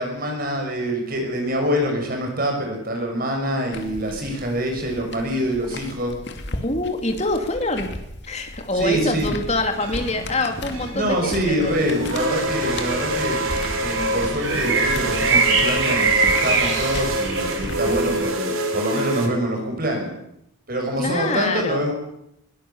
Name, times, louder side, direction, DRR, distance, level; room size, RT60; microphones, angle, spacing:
voice 1, 0.0-6.2 8.8-9.3 10.9-13.4 13.8-20.1 20.7-21.9, equal, 45° right, 3 dB, 6.4 m, -25 dB
sound 1, 3.7-18.2, left 1 dB, 55° left, 2.5 m, -36 dB
voice 2, 6.6-7.9 8.3-11.8 16.9-17.2 18.0-18.1 21.0-21.8, left 2 dB, 30° left, 5 dB, 2.7 m, -25 dB
sound 2, 9.7-19.3, right 1 dB, 85° right, 4.0 m, -26 dB
sound 3, 12.5-18.3, right 4 dB, 65° right, 5.8 m, -24 dB
22.5 x 18.0 x 7.3 m, 0.78 s
head